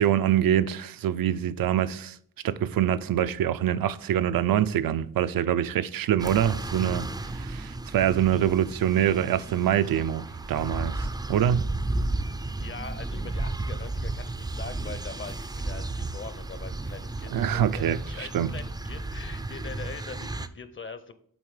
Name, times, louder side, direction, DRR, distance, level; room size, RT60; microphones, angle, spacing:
voice 1, 0.0-2.2 2.4-11.6 17.3-18.5, right 10 dB, 75° right, 0.5 m, -25 dB
sound 1, 6.2-20.5, right 2 dB, 10° right, 0.4 m, -33 dB
voice 2, 12.6-21.1, left 5 dB, 35° left, 0.6 m, -42 dB
8.1 x 3.9 x 4.8 m
wide cardioid pair, 110°, 35 cm